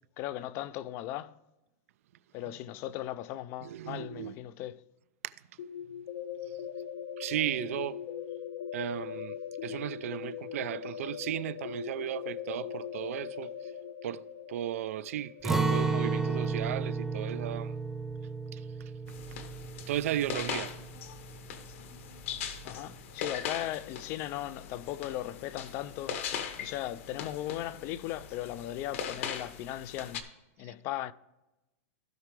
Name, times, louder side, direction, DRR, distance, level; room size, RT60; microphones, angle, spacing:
voice 1, 0.2-1.4 2.3-4.8 22.6-26.2 26.6-30.2 30.6-31.1, left 13 dB, 30° left, 0.3 m, -37 dB
voice 2, 3.6-4.4 5.2-5.3 6.4-6.5 7.2-8.0 8.7-9.4 9.6-13.7 14.0-14.2 14.5-17.8 18.5-18.7 19.9-20.7 30.6-30.7, right 12 dB, 75° right, 0.4 m, -35 dB
sound 1, 5.6-17.3, left 8 dB, 80° left, 1.2 m, -41 dB
Acoustic guitar, 15.4-21.3 21.7-21.8 22.3-22.8, right 4 dB, 5° right, 0.7 m, -32 dB
sound 2, 19.1-30.2, left 8 dB, 65° left, 1.2 m, -40 dB
16.0 x 5.8 x 3.2 m
supercardioid pair, 170°, 8 cm